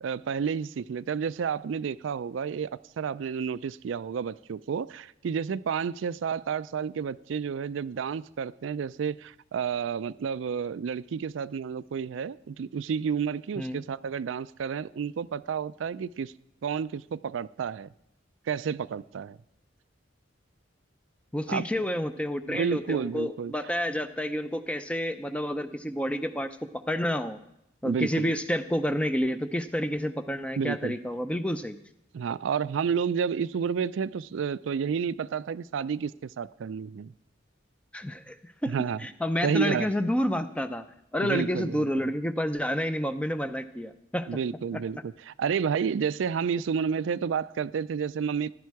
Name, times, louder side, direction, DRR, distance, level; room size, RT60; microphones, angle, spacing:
voice 1, 0.0-16.3 16.6-17.9 18.5-19.4 21.5-21.7 22.5-23.5 27.8-28.3 30.6-30.9 32.1-37.1 38.7-39.0 39.4-39.9 41.2-41.9 44.3-48.5, right 6 dB, 75° right, 16 dB, 0.4 m, -30 dB
voice 2, 21.3-27.4 27.8-31.8 37.9-38.7 39.0-40.8 41.1-44.3 44.7-44.8, equal, 5° left, 10 dB, 0.5 m, -29 dB
15.5 x 10.5 x 4.7 m, 0.83 s
head